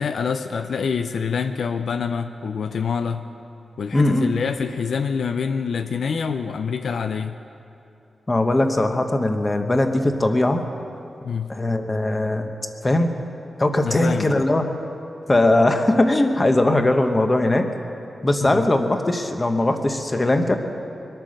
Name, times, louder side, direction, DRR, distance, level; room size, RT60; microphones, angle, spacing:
voice 1, 0.0-3.2 3.8-7.4 11.2-11.5 13.8-14.4 18.4-18.7, left 6 dB, 65° left, 8 dB, 0.5 m, -26 dB
voice 2, 3.9-4.3 8.3-10.6 11.5-12.5 12.8-13.1 13.6-14.6 15.3-17.7 18.2-20.6, left 1 dB, 20° left, 6 dB, 0.9 m, -20 dB
23.0 x 9.1 x 6.4 m, 2.7 s
wide cardioid pair, 155°, 0 cm